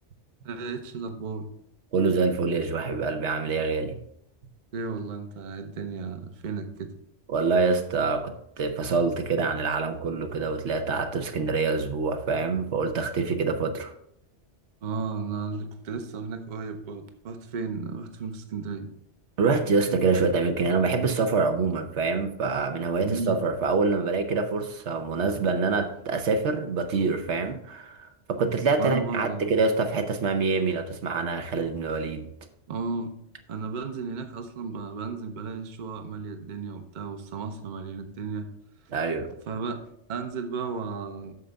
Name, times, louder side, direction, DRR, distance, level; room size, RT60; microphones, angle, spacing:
voice 1, 0.4-1.5 4.7-6.9 14.8-18.9 23.0-23.4 28.8-29.5 32.7-33.2 33.5-38.5 39.5-41.3, right 4 dB, 45° right, 0.8 m, -34 dB
voice 2, 1.9-4.0 7.3-13.9 19.4-32.3 38.9-39.3, right 4 dB, 75° right, 1.1 m, -26 dB
9.4 x 6.6 x 3.5 m
omnidirectional pair, 1.2 m